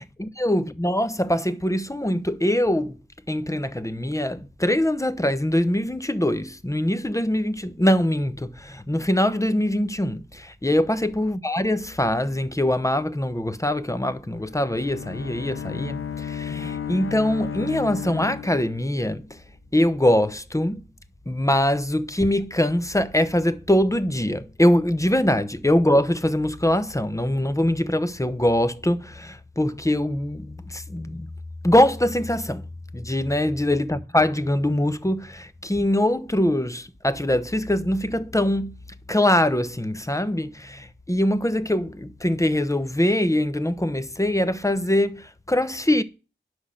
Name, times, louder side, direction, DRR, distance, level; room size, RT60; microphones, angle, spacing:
voice 1, 0.0-3.0 3.3-19.3 19.7-20.8 21.3-31.3 31.6-32.6 32.9-38.7 39.1-46.0, left 1 dB, 15° left, 0.8 m, -23 dB
Bowed string instrument, 14.4-19.1, left 8 dB, 80° left, 0.6 m, -33 dB
10.0 x 6.2 x 6.4 m
wide cardioid pair, 60°, 21 cm